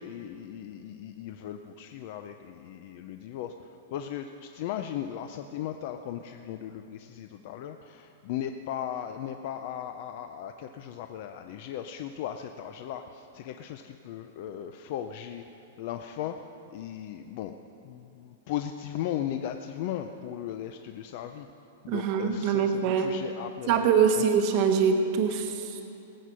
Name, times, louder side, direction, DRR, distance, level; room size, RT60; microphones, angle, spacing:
voice 1, 0.0-3.5 3.9-15.4 15.8-16.3 16.7-17.5 17.8-21.5 21.8-23.8 24.2-24.3, left 10 dB, 35° left, 7 dB, 0.5 m, -37 dB
voice 2, 21.9-23.1 23.7-25.8, right 6 dB, 30° right, 5 dB, 1.0 m, -24 dB
19.5 x 8.4 x 6.2 m, 2.8 s
supercardioid pair, 180°, 0 cm